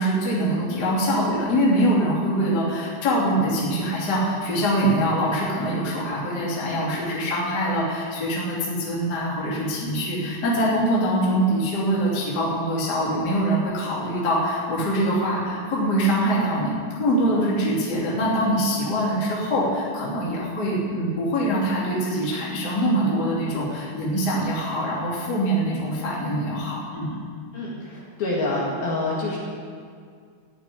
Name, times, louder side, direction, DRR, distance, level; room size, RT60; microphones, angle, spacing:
voice 1, 0.0-27.2, equal, 25° left, -6 dB, 2.6 m, -24 dB
voice 2, 27.5-29.4, left 2 dB, 55° left, -5 dB, 3.3 m, -27 dB
15.0 x 6.8 x 9.6 m, 2.1 s
omnidirectional pair, 5.7 m